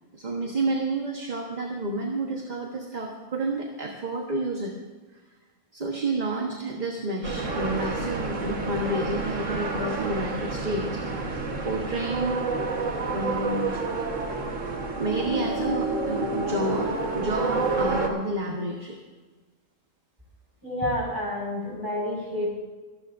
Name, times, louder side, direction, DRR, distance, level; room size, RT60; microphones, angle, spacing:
voice 1, 0.1-4.7 5.7-11.0 11.6-12.4 13.1-13.8 15.0-19.0, right 2 dB, 35° right, 0 dB, 1.4 m, -30 dB
sound 1, 7.2-18.1, right 3 dB, 75° right, 1.8 m, -29 dB
voice 2, 20.6-22.5, left 1 dB, 15° right, -4 dB, 5.6 m, -29 dB
24.0 x 12.5 x 2.6 m, 1.3 s
omnidirectional pair, 1.3 m